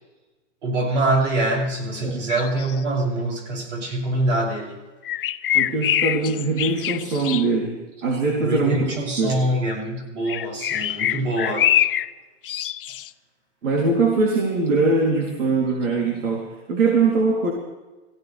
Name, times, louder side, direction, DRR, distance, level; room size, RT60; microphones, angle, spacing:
voice 1, 0.6-4.8 8.4-11.7, right 2 dB, 70° right, -2 dB, 7.6 m, -24 dB
sound 1, 2.3-2.8 5.0-7.5 10.3-12.1 12.4-13.1, left 12 dB, 50° left, 0.4 m, -24 dB
voice 2, 5.5-8.9 9.2-9.4 13.6-17.5, right 3 dB, 85° right, -1 dB, 3.6 m, -22 dB
23.5 x 16.5 x 3.5 m, 1.2 s
supercardioid pair, 180°, 37 cm